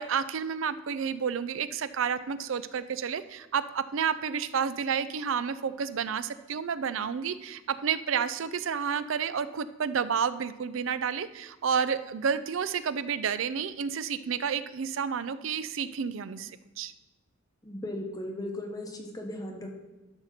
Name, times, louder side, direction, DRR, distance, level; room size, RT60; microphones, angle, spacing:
voice 1, 0.0-16.5 16.8-16.9, right 7 dB, 75° right, 14 dB, 0.5 m, -30 dB
voice 2, 17.6-19.7, left 1 dB, 20° left, 2 dB, 1.0 m, -37 dB
11.5 x 4.3 x 5.7 m, 1.1 s
head